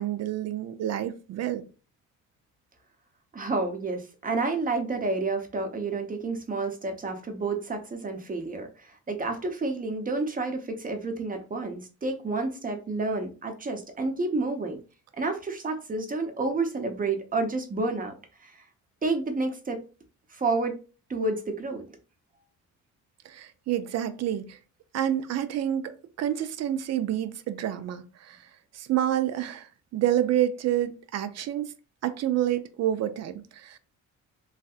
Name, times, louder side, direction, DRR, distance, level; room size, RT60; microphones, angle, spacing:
voice 1, 0.0-1.6 23.2-24.6 24.9-28.4 28.7-31.7 32.0-33.8, right 11 dB, 60° right, 0.5 m, -28 dB
voice 2, 3.3-14.8 15.2-18.1 18.4-18.6 19.0-19.8 20.3-20.8 21.1-21.9, right 3 dB, 30° right, 0.8 m, -30 dB
3.2 x 2.7 x 2.4 m
cardioid pair, 90°, 30 cm